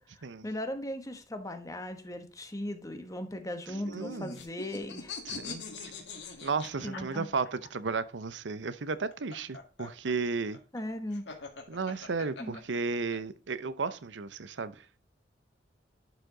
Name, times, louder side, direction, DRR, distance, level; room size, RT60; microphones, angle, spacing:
voice 1, 0.0-5.1 6.2-6.3 6.8-7.3 10.7-11.2 12.4-12.6, left 1 dB, 20° left, 1.1 m, -38 dB
sound 1, 3.7-7.7 8.9-13.2, left 4 dB, 75° left, 1.9 m, -43 dB
voice 2, 3.9-4.3 5.3-5.9 6.4-10.6 11.7-14.8, right 4 dB, 85° right, 0.7 m, -34 dB
11.0 x 4.9 x 3.8 m
head